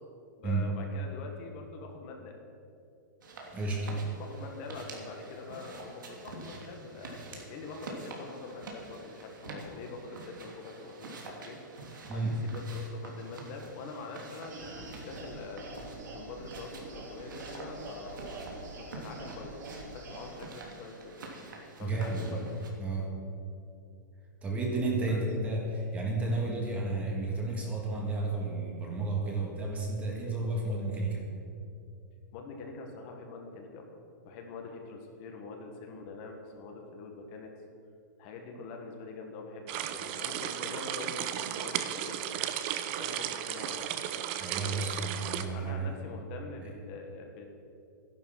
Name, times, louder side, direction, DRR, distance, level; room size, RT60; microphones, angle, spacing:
voice 1, 0.4-2.4 4.1-11.6 12.1-15.6 16.1-18.4 18.8-21.3 21.8-22.4 25.0-25.2 32.3-37.5 38.2-42.5 42.9-43.9 45.5-47.4, left 4 dB, 35° left, 2 dB, 1.6 m, -44 dB
sound 1, 3.2-22.7, right 3 dB, 85° right, 2.9 m, -47 dB
voice 2, 3.5-3.9 12.1-12.3 21.8-22.4 22.8-23.1 24.4-31.3 44.4-46.0 46.6-46.7, right 2 dB, 15° right, -1 dB, 1.9 m, -32 dB
sound 2, 14.4-20.3, right 2 dB, 65° right, 3.8 m, -45 dB
sound 3, 39.7-45.4, right 11 dB, 35° right, 0.7 m, -35 dB
13.0 x 11.0 x 5.9 m, 2.6 s
hypercardioid pair, 160°, 10 cm